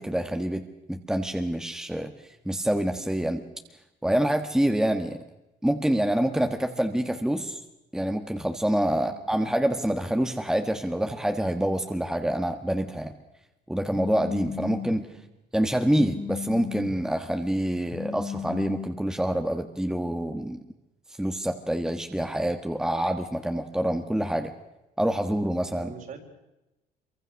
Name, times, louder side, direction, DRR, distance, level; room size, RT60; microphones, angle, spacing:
voice 1, 0.0-2.1 2.4-3.4 4.0-5.2 5.6-7.6 7.9-13.1 13.7-15.1 15.5-20.6 21.2-24.5 25.0-25.9, right 1 dB, 5° right, 6 dB, 1.5 m, -26 dB
voice 2, 8.9-9.2 15.1-15.2 25.7-26.2, right 6 dB, 50° right, 3 dB, 4.6 m, -43 dB
Telephone, 13.9-15.0 15.9-17.0 17.9-18.9, left 7 dB, 45° left, 2.4 m, -35 dB
25.0 x 23.5 x 6.4 m, 0.95 s
cardioid pair, 110°, 17 cm